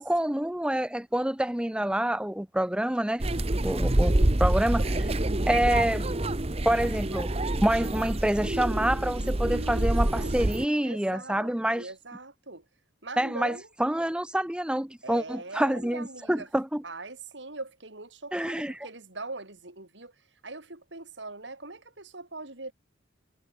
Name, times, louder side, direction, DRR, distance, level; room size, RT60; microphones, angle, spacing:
voice 1, 0.0-3.2 3.6-5.1 5.5-6.1 6.6-7.3 7.6-11.9 13.2-16.8 18.3-18.7, right 1 dB, 5° right, 0.5 m, -27 dB
sound 1, 3.2-10.7, right 1 dB, 35° right, 1.1 m, -27 dB
voice 2, 9.5-10.5 10.8-12.6 13.0-13.7 15.0-16.5 16.8-22.7, right 2 dB, 75° right, 4.7 m, -41 dB
head